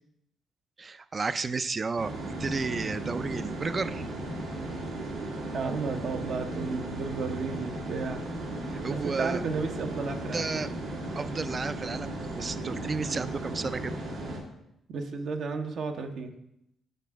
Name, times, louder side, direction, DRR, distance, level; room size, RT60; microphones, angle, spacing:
voice 1, 0.8-2.1 2.4-4.1 8.7-9.4 10.3-10.7 11.2-14.0, right 4 dB, 35° right, 14 dB, 0.4 m, -32 dB
sound 1, 2.0-14.4, right 1 dB, 85° right, 1.8 m, -36 dB
voice 2, 5.4-8.2 8.9-10.5 14.9-16.3, right 4 dB, 65° right, 4 dB, 0.8 m, -33 dB
7.9 x 5.8 x 3.5 m, 0.78 s
cardioid pair, 90°, 0 cm